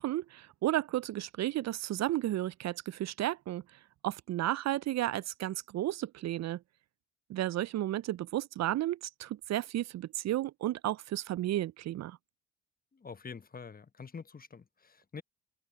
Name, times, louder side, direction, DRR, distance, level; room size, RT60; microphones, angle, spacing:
voice 1, 0.0-6.6 7.3-12.2, right 14 dB, 50° right, 0.6 m, -33 dB
voice 2, 12.9-15.2, left 5 dB, 25° left, 1.3 m, -46 dB
hypercardioid pair, 50°, 33 cm